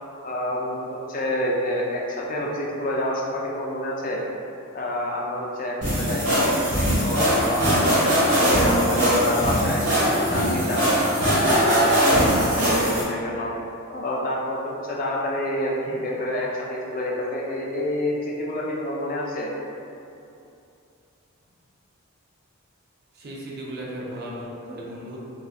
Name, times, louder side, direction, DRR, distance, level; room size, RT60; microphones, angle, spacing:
voice 1, 0.2-4.2 4.7-6.5 7.0-10.9 11.4-13.5 13.9-19.5, left 1 dB, 40° left, -3 dB, 0.4 m, -27 dB
sound 1, 5.8-13.0, equal, 85° right, 1.3 m, -21 dB
voice 2, 23.1-25.2, right 1 dB, 45° right, -5 dB, 0.4 m, -36 dB
3.9 x 2.3 x 2.3 m, 2.7 s
head